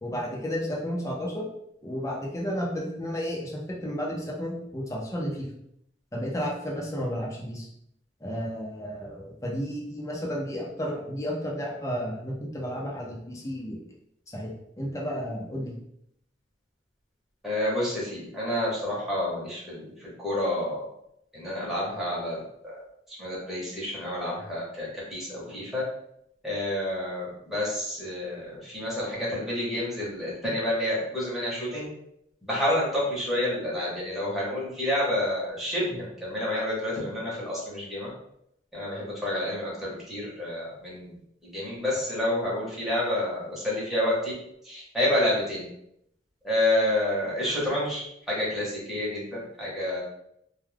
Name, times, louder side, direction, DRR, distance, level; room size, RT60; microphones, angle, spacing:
voice 1, 0.0-1.4 1.8-5.5 6.1-7.7 8.2-13.8 14.3-14.5 14.8-15.7, equal, 20° left, -2 dB, 0.6 m, -32 dB
voice 2, 17.4-20.8 21.3-22.8 23.1-25.8 26.4-31.9 32.4-38.1 38.7-41.1 41.4-44.3 44.6-45.7 46.4-50.0, left 1 dB, ahead, -8 dB, 1.0 m, -29 dB
2.3 x 2.3 x 3.3 m, 0.75 s
head